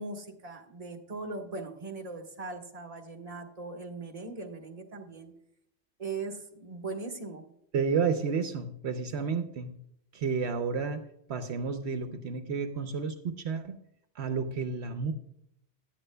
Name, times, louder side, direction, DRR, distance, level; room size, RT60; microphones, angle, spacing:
voice 1, 0.0-5.3 6.0-7.4, right 3 dB, 35° right, 3 dB, 1.3 m, -39 dB
voice 2, 7.7-9.7 10.1-11.0 11.3-13.8 14.1-15.1, right 5 dB, 70° right, 7 dB, 0.9 m, -31 dB
16.0 x 10.5 x 2.2 m, 0.77 s
omnidirectional pair, 1.2 m